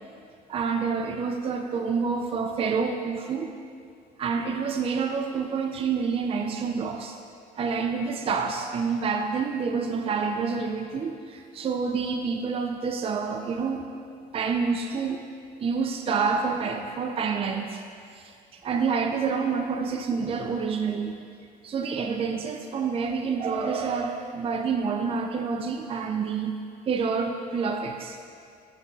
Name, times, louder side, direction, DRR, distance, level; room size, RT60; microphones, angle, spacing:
voice 1, 0.5-3.5 4.2-7.2 7.6-13.8 14.3-15.2 15.6-17.8 18.2-21.2 21.6-26.5 26.9-28.2, right 5 dB, 35° right, 4 dB, 0.5 m, -28 dB
12.0 x 5.9 x 3.3 m, 2.3 s
cardioid pair, 110°, 17 cm